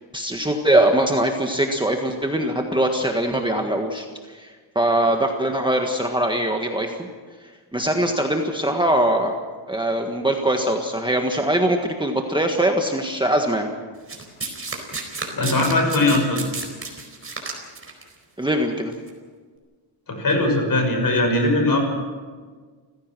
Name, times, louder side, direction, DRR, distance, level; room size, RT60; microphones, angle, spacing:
voice 1, 0.1-7.1 7.7-9.4 9.7-13.7 18.4-18.9, right 1 dB, 10° right, 2 dB, 1.6 m, -22 dB
Domestic sounds home sounds, 14.1-18.0 18.9-19.1, right 3 dB, 25° right, 4.5 m, -32 dB
voice 2, 15.3-16.4 20.1-21.8, left 2 dB, 45° left, 4 dB, 6.1 m, -20 dB
29.5 x 16.0 x 6.2 m, 1.5 s
wide cardioid pair, 140°, 49 cm